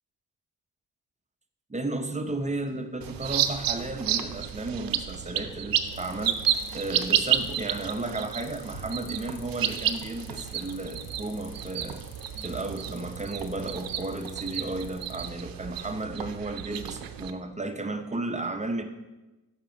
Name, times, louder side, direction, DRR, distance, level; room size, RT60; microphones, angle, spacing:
voice 1, 1.7-6.4 6.7-12.0 12.4-18.8, right 2 dB, 20° right, 6 dB, 0.7 m, -33 dB
sound 1, 2.0-15.0, left 1 dB, 20° left, 2.1 m, -55 dB
sound 2, 3.0-17.3, right 10 dB, 75° right, 0.6 m, -31 dB
sound 3, 5.9-15.3, left 6 dB, 75° left, 0.9 m, -50 dB
7.4 x 5.9 x 5.1 m, 1.1 s
cardioid pair, 80°, 34 cm